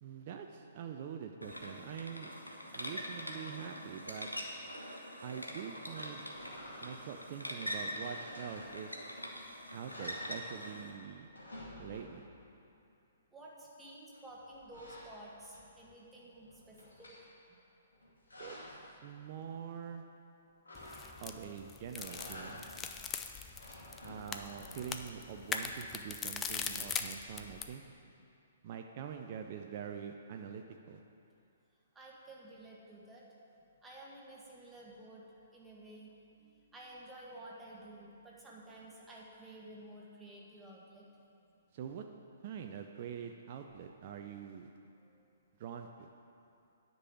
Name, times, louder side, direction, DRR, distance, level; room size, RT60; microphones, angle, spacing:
voice 1, 0.0-2.3 2.7-4.3 5.2-8.9 9.7-11.3 11.8-12.3 18.4-20.0 21.2-22.7 24.0-27.8 28.6-31.0 41.7-42.1 42.4-44.7 45.6-46.1, right 8 dB, 40° right, 4 dB, 0.5 m, -45 dB
sound 1, 1.4-10.9, equal, 90° left, 1.2 m, -44 dB
sound 2, 6.3-7.2 7.8-9.1 9.5-9.6 9.8-10.9 11.2-12.4 14.1-15.9 16.3-17.2 17.9-18.9 20.7-21.5 21.9-22.9 23.4-25.2, left 1 dB, 75° left, 2.3 m, -51 dB
voice 2, 13.3-17.1 32.0-33.2 33.8-35.2 35.5-41.1 45.0-45.2, right 1 dB, 10° right, -5 dB, 1.7 m, -52 dB
sound 3, 20.8-27.7, left 6 dB, 15° left, 0.5 m, -41 dB
9.8 x 5.4 x 7.9 m, 2.7 s
figure-of-eight pair, 120°, 0 cm